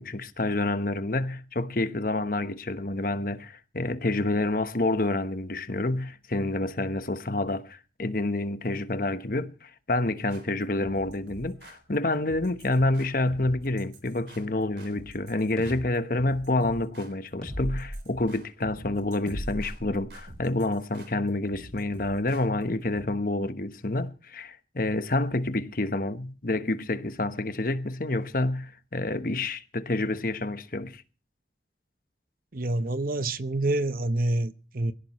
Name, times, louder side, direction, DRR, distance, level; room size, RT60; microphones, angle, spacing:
voice 1, 0.0-31.0, left 2 dB, 50° left, 1.1 m, -28 dB
sound 1, 10.3-23.1, right 1 dB, 70° right, 3.6 m, -49 dB
sound 2, 15.6-15.8 17.4-17.9 19.3-20.4, equal, 5° left, 7.4 m, -35 dB
voice 2, 32.5-34.9, right 2 dB, 50° right, 0.9 m, -27 dB
23.5 x 16.5 x 3.1 m
head